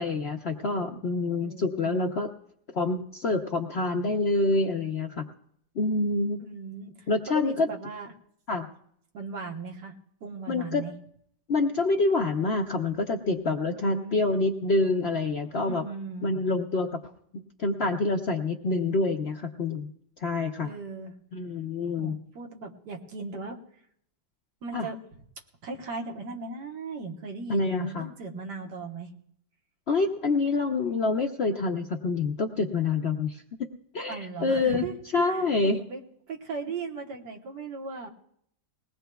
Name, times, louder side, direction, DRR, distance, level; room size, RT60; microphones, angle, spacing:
voice 1, 0.0-2.3 2.7-5.2 5.8-6.4 7.1-7.7 8.5-8.7 10.5-10.8 11.5-15.8 16.2-17.1 17.6-19.9 20.2-20.7 21.3-22.1 24.7-24.9 27.5-28.1 29.9-33.4 33.9-34.8 35.1-35.8, left 3 dB, 55° left, 4 dB, 0.7 m, -26 dB
voice 2, 1.4-2.1 6.4-8.1 9.1-10.9 13.7-14.2 15.6-16.3 20.6-21.2 22.0-23.6 24.6-25.0 25.6-29.1 34.1-34.9 35.2-38.1, right 4 dB, 80° right, 1 dB, 1.9 m, -38 dB
20.5 x 17.5 x 2.3 m, 0.69 s
omnidirectional pair, 1.8 m